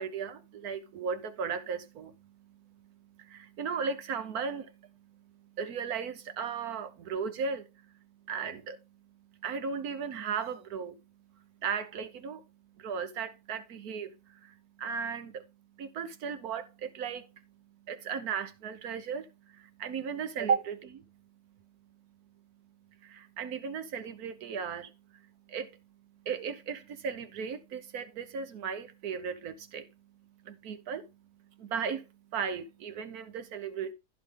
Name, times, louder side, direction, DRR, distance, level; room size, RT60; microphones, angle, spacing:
voice 1, 0.0-11.0 11.3-12.5 12.8-15.5 15.8-21.2 23.0-25.9 26.1-33.9, right 6 dB, 85° right, 1.5 m, -37 dB
14.5 x 5.0 x 3.7 m
omnidirectional pair, 1.5 m